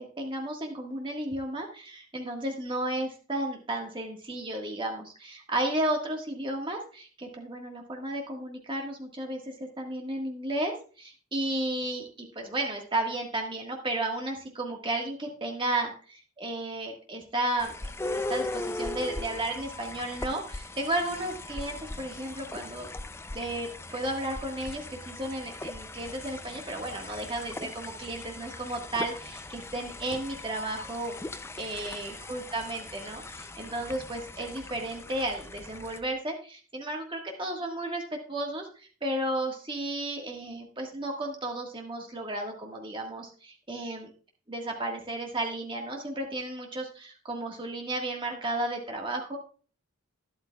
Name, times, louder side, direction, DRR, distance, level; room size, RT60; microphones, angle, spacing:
voice 1, 0.0-17.8 18.1-22.9 23.3-38.0 38.3-44.1 44.5-49.4, right 1 dB, 25° right, 1 dB, 1.5 m, -33 dB
sound 1, 17.6-36.0, left 2 dB, 10° left, 0.3 m, -39 dB
12.0 x 11.0 x 2.3 m, 0.38 s
head